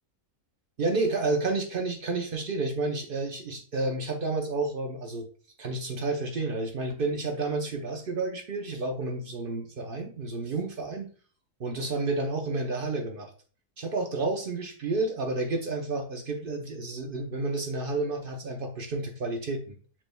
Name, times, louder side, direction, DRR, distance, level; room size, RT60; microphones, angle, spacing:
voice 1, 0.8-5.3 5.6-11.1 11.6-13.3 13.8-19.7, right 3 dB, 60° right, 3 dB, 0.6 m, -30 dB
7.2 x 3.3 x 2.2 m, 0.40 s
omnidirectional pair, 1.7 m